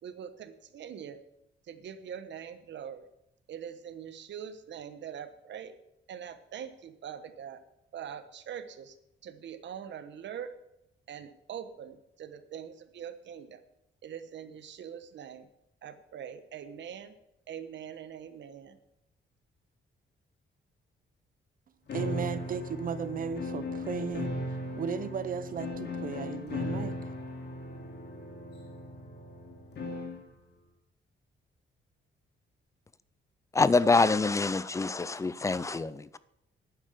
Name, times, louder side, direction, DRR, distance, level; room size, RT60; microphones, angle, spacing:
voice 1, 0.0-1.2 1.7-3.1 3.5-5.7 6.1-7.6 7.9-9.0 9.2-10.5 11.1-13.6 14.0-15.5 15.8-17.1 17.5-18.8, right 8 dB, 65° right, 1.1 m, -43 dB
sound 1, 21.9-30.3, left 2 dB, 55° left, 2.8 m, -37 dB
voice 2, 21.9-24.3 24.8-27.1, right 6 dB, 45° right, 0.6 m, -35 dB
voice 3, 33.5-36.2, left 3 dB, 15° left, 0.4 m, -25 dB
11.0 x 9.5 x 6.7 m
wide cardioid pair, 175°, 21 cm